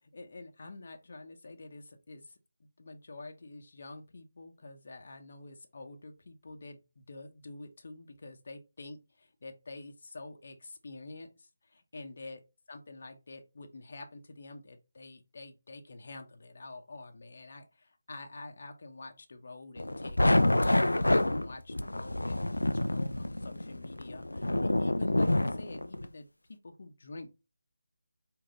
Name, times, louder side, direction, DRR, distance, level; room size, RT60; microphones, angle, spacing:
voice 1, 0.0-12.4 12.7-26.3 26.6-27.3, left 2 dB, 50° left, 0.8 m, -48 dB
sound 1, 19.8-26.1, left 1 dB, 85° left, 0.4 m, -28 dB
5.0 x 2.6 x 3.8 m
figure-of-eight pair, 155°, 0 cm